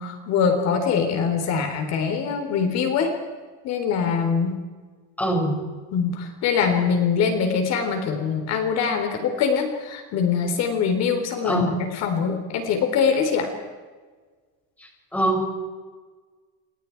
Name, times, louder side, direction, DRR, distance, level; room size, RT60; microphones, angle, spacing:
voice 1, 0.0-3.2 3.6-4.6 5.9-13.5, left 6 dB, 55° left, 5 dB, 4.0 m, -23 dB
voice 2, 5.2-5.6 11.4-11.7 15.1-15.4, right 1 dB, 5° left, 1 dB, 6.0 m, -22 dB
29.5 x 27.0 x 4.7 m, 1.4 s
cardioid pair, 155°, 31 cm